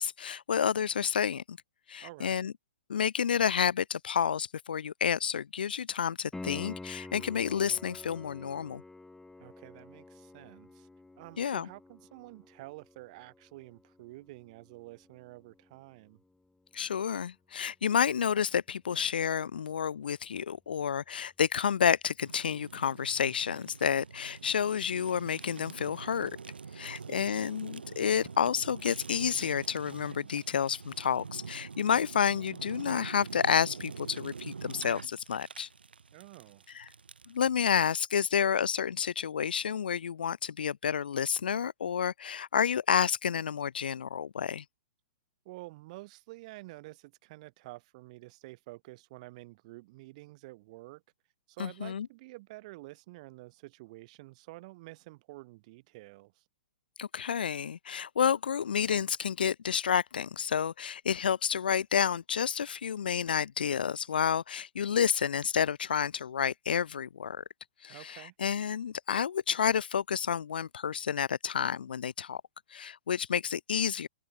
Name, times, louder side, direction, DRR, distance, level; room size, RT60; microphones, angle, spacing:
voice 1, 0.0-1.6 1.9-2.5 2.9-8.8 11.4-11.7 16.7-26.3 26.7-35.7 36.7-36.8 37.3-44.6 51.6-52.1 57.0-67.4 67.8-72.4 72.7-74.1, left 8 dB, 65° left, 1.6 m, -30 dB
voice 2, 2.0-2.4 9.4-10.9 11.2-16.2 26.8-27.4 36.1-36.6 45.4-51.0 51.5-56.4 67.9-68.3, right 21 dB, 40° right, 5.8 m, -49 dB
Piano, 6.3-17.0 20.3-20.4, left 2 dB, 5° left, 5.0 m, -49 dB
Fire, 22.2-37.4, right 5 dB, 70° right, 3.4 m, -45 dB
figure-of-eight pair, 110°, 6 cm